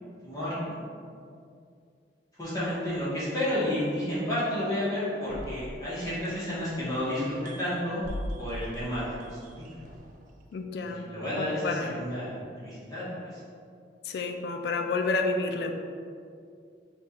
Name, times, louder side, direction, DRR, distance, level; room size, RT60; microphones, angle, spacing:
voice 1, 0.2-0.8 2.4-8.0 8.4-9.6 10.8-12.3 12.6-13.4, left 1 dB, 20° left, -12 dB, 1.1 m, -31 dB
sound 1, 5.3-6.9 7.2-10.3, equal, 45° right, 0.3 m, -40 dB
voice 2, 10.5-11.1 11.4-12.0 14.0-15.7, left 3 dB, 60° left, 5 dB, 0.3 m, -30 dB
3.2 x 2.3 x 4.1 m, 2.3 s
head